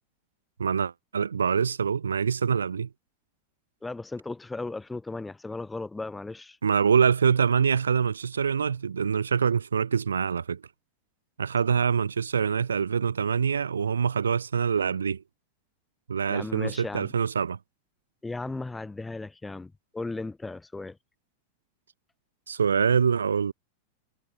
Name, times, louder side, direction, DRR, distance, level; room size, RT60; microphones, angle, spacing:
voice 1, 0.6-2.9 6.6-10.6 11.4-15.2 16.1-17.6 22.5-23.5, right 6 dB, 70° right, 2.2 m, -25 dB
voice 2, 3.8-6.6 16.3-17.1 18.2-21.0, left 3 dB, 10° left, 7.6 m, -36 dB
figure-of-eight pair, 90°, 0 cm